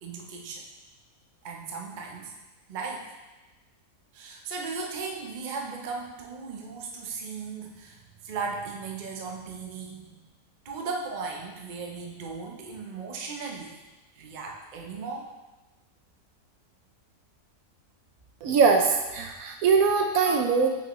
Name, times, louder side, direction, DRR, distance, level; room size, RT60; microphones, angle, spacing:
voice 1, 0.0-0.6 1.4-2.3 2.7-3.1 4.1-10.3 10.6-13.8 14.2-15.3, right 4 dB, 45° right, 0 dB, 0.6 m, -37 dB
voice 2, 18.4-20.7, right 5 dB, 70° right, 4 dB, 1.0 m, -22 dB
5.8 x 5.5 x 3.0 m, 1.1 s
omnidirectional pair, 1.7 m